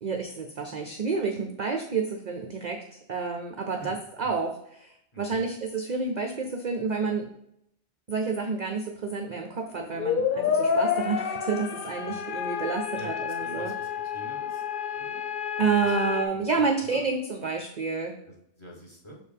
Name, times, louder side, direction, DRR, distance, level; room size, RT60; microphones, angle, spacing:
voice 1, 0.0-7.3 8.1-13.7 15.6-18.1, right 4 dB, 50° right, 4 dB, 0.6 m, -29 dB
voice 2, 5.1-5.5 12.0-12.1 13.0-14.6 14.9-15.2 15.8-16.0 16.5-17.0 18.2-19.2, right 1 dB, 25° left, -2 dB, 1.4 m, -46 dB
sound 1, 9.8-16.3, left 7 dB, 60° left, 0.5 m, -29 dB
5.9 x 4.6 x 3.5 m, 0.74 s
omnidirectional pair, 1.3 m